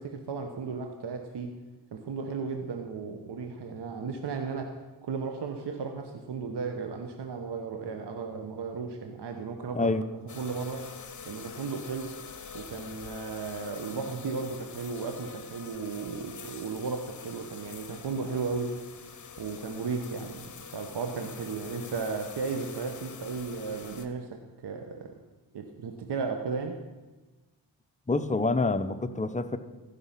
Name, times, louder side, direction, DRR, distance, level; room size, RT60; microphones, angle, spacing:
voice 1, 0.0-1.5 1.9-9.9 10.3-10.9 11.2-12.2 12.5-18.8 19.4-25.2 25.5-26.8, right 4 dB, 65° right, 5 dB, 1.1 m, -35 dB
sound 1, 10.3-24.1, left 6 dB, 40° left, 1.0 m, -45 dB
voice 2, 28.1-29.6, left 3 dB, 15° left, 9 dB, 0.7 m, -27 dB
14.5 x 5.7 x 5.8 m, 1.2 s
cardioid pair, 60°, 45 cm